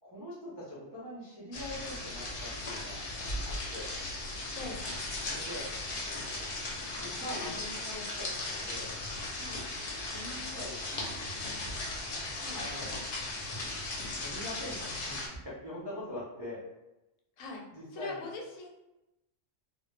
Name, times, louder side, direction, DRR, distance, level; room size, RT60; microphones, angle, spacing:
voice 1, 0.0-3.0 3.4-3.9 5.3-5.7 6.9-8.9 9.9-11.8 12.5-13.0 14.1-16.6 17.7-18.3, left 1 dB, 35° right, -9 dB, 0.4 m, -43 dB
sound 1, 1.5-15.3, left 2 dB, 55° left, 0.7 m, -37 dB
voice 2, 17.9-18.7, left 3 dB, 85° left, 0 dB, 1.0 m, -42 dB
2.1 x 2.1 x 3.1 m, 0.95 s
omnidirectional pair, 1.3 m